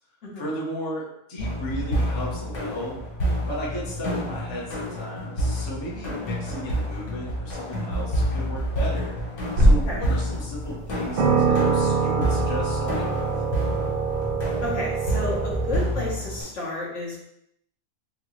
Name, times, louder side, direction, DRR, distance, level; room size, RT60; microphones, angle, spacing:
voice 1, 0.4-3.0 3.5-9.2 9.6-13.3, equal, 25° left, -6 dB, 0.7 m, -35 dB
sound 1, 1.4-16.4, equal, 90° left, 1.7 m, -29 dB
sound 2, 9.6-10.1 10.6-10.7 11.2-15.8, right 3 dB, 75° right, 0.5 m, -23 dB
voice 2, 14.6-17.2, left 1 dB, 55° left, -5 dB, 1.2 m, -31 dB
3.8 x 2.2 x 3.0 m, 0.78 s
omnidirectional pair, 1.5 m